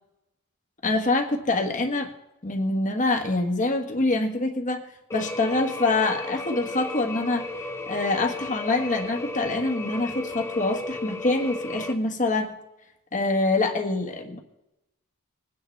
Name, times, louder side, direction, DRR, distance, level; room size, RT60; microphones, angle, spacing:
voice 1, 0.8-2.1 2.4-4.8 5.1-7.5 7.9-12.6 13.1-14.4, left 2 dB, 35° left, 3 dB, 1.5 m, -25 dB
sound 1, 5.1-11.9, left 2 dB, 10° left, 0.9 m, -34 dB
21.5 x 9.5 x 3.3 m, 0.92 s
head